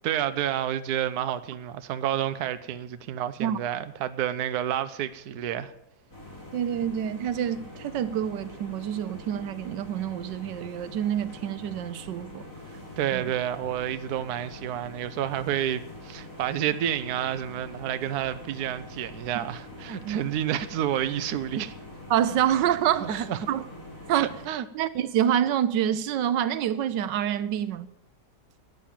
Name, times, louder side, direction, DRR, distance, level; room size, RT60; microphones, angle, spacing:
voice 1, 0.0-5.7 12.7-21.7 23.0-23.4 24.1-24.7, right 10 dB, 65° right, 1.2 m, -29 dB
sound 1, 6.1-24.5, left 1 dB, 50° left, 5.1 m, -44 dB
voice 2, 6.5-12.5 13.1-13.2 20.0-20.2 22.1-23.6 24.1-24.3 24.7-27.9, right 10 dB, 85° right, 1.3 m, -27 dB
13.5 x 9.0 x 8.6 m
omnidirectional pair, 1.9 m